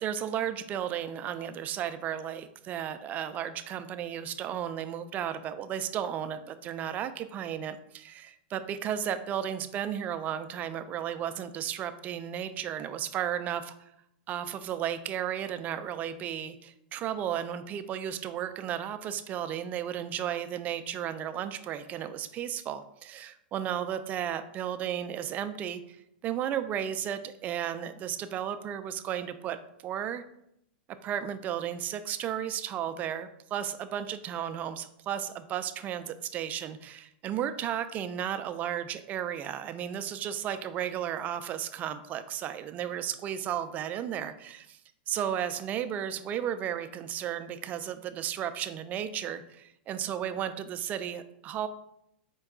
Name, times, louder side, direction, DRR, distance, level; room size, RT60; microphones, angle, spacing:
voice 1, 0.0-13.7 14.3-26.0 26.2-30.2 31.0-44.8 45.1-51.7, right 9 dB, 30° right, 10 dB, 0.3 m, -34 dB
4.5 x 2.2 x 3.6 m, 0.77 s
hypercardioid pair, 125°, 5 cm